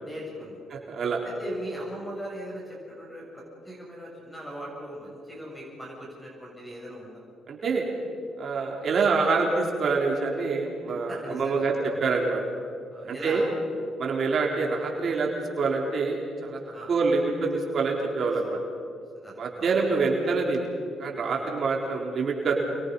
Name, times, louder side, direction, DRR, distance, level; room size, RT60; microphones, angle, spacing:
voice 1, 0.0-0.6 1.2-7.2 11.1-12.0 12.9-13.5 16.7-16.9 18.5-18.6 19.1-19.7 21.3-21.4, right 1 dB, 5° left, -3 dB, 8.0 m, -39 dB
voice 2, 0.7-1.2 7.5-7.9 8.4-11.7 12.0-12.4 13.1-13.4 14.0-15.3 15.6-16.6 16.9-18.6 19.4-20.7 21.0-22.6, right 4 dB, 55° right, -1 dB, 4.0 m, -26 dB
28.5 x 22.5 x 5.5 m, 2.4 s
cardioid pair, 90°, 0 cm